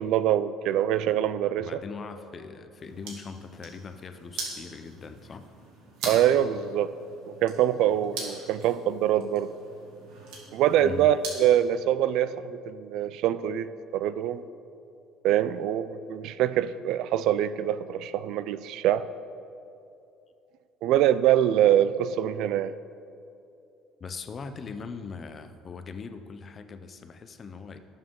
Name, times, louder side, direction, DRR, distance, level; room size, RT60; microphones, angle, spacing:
voice 1, 0.0-1.8 6.1-6.9 7.4-9.5 10.5-14.4 15.2-19.1 20.8-22.7, right 11 dB, 60° right, 15 dB, 0.3 m, -24 dB
voice 2, 1.6-5.5 10.8-11.1 24.0-27.8, left 5 dB, 25° left, 9 dB, 0.6 m, -40 dB
sound 1, 2.8-11.6, right 3 dB, 85° right, 2.5 m, -41 dB
18.5 x 7.2 x 3.8 m, 2.6 s
cardioid pair, 160°, 0 cm